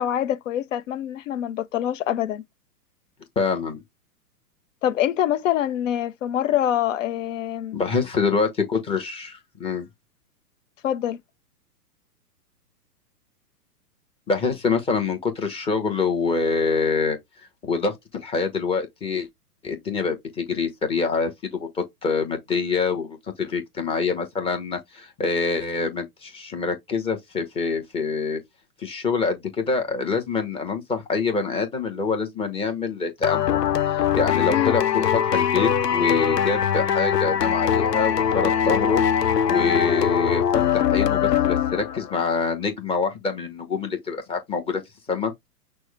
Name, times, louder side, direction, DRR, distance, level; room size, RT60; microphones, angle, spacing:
voice 1, 0.0-2.4 4.8-7.8 10.8-11.2 34.5-34.7, left 11 dB, 55° left, 0.7 m, -25 dB
voice 2, 3.4-3.8 7.7-9.9 14.3-17.2 17.6-19.3 19.6-28.4 28.8-39.0 39.4-44.8 45.1-45.3, left 4 dB, 10° left, 0.9 m, -26 dB
sound 1, 33.2-42.1, left 9 dB, 85° left, 0.7 m, -22 dB
6.1 x 2.1 x 3.3 m
hypercardioid pair, 120°, 47 cm